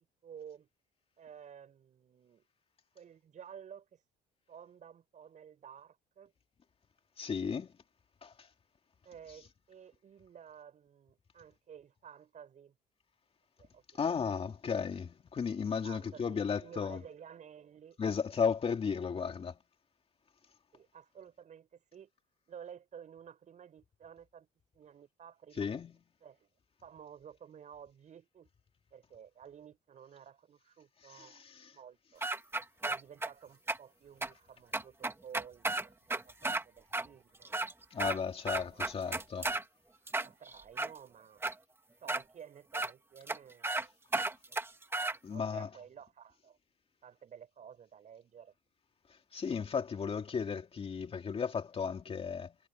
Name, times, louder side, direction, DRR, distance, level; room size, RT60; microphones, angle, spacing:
voice 1, 0.2-0.7 1.2-2.4 2.9-4.0 4.5-6.3 9.0-12.7 13.6-14.1 14.4-14.5 15.8-18.0 20.7-22.1 22.5-24.5 24.7-25.7 26.2-26.5 26.8-28.5 28.9-31.4 31.7-32.2 32.8-36.0 36.2-37.5 38.5-39.5 40.2-41.4 42.0-43.9 45.3-46.6 47.0-48.5, right 8 dB, 45° right, 6.5 m, -53 dB
voice 2, 7.2-7.7 8.2-8.5 14.0-17.0 18.0-19.6 25.6-26.0 31.1-31.7 37.9-39.5 45.2-45.7 49.3-52.6, left 6 dB, 35° left, 2.6 m, -35 dB
sound 1, 32.2-33.3 33.7-33.8 34.2-34.3 34.7-36.6 36.9-37.1 37.4-38.2 38.5-39.6 40.1-40.9 41.4-41.5 42.1-42.2 42.7-42.9 43.3-43.4 43.6-43.8 44.1-45.2, right 2 dB, 15° right, 1.6 m, -33 dB
cardioid pair, 110°, 17 cm